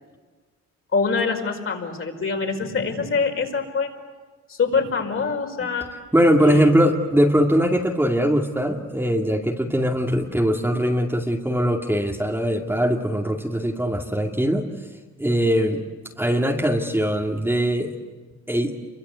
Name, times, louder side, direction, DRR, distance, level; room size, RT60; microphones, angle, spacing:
voice 1, 0.9-3.9 4.5-5.9 6.4-6.7, left 4 dB, 45° left, 2 dB, 5.3 m, -24 dB
voice 2, 6.1-14.7 15.2-15.8 16.2-17.9 18.5-18.7, equal, 5° right, 1 dB, 2.4 m, -21 dB
27.5 x 24.0 x 8.3 m, 1.4 s
cardioid pair, 90°, 30 cm